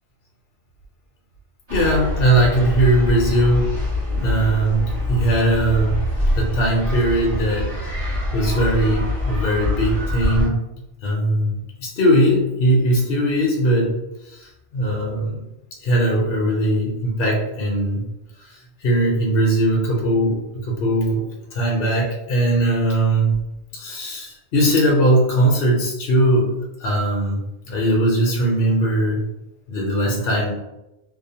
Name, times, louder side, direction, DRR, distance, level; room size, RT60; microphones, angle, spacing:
voice 1, 1.7-3.7 4.2-6.0 6.4-7.7 8.3-10.6 11.0-13.9 14.3-15.4 15.8-18.0 18.8-21.3 21.5-23.4 23.7-27.4 27.7-29.2 29.7-30.5, right 1 dB, 60° left, -2 dB, 0.8 m, -19 dB
sound 1, 1.7-10.5, left 1 dB, 35° right, 1.0 m, -24 dB
2.6 x 2.0 x 2.7 m, 0.94 s
omnidirectional pair, 1.2 m